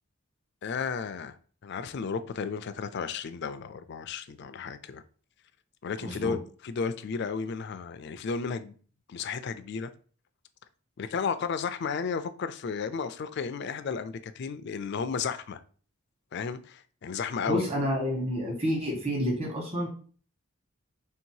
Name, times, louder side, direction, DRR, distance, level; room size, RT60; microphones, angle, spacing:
voice 1, 0.6-1.4 1.6-5.0 5.8-6.4 6.6-8.7 9.1-9.9 11.0-15.6 16.3-17.7, left 5 dB, 50° left, 0.3 m, -33 dB
voice 2, 6.0-6.4 17.5-19.9, equal, 30° right, 1.2 m, -29 dB
3.4 x 2.7 x 4.6 m
head